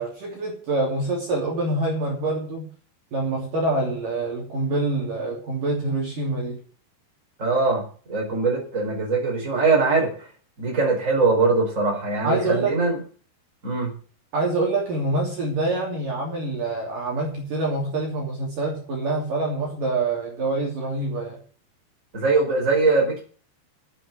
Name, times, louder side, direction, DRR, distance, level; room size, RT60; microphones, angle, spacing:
voice 1, 0.0-2.7 3.1-6.6 12.2-12.8 14.3-21.4, right 2 dB, 50° right, -1 dB, 4.4 m, -26 dB
voice 2, 7.4-7.8 8.1-10.1 10.6-12.9 13.6-13.9 22.1-23.2, right 3 dB, 15° right, -1 dB, 4.9 m, -21 dB
9.8 x 8.8 x 8.1 m, 0.42 s
omnidirectional pair, 5.0 m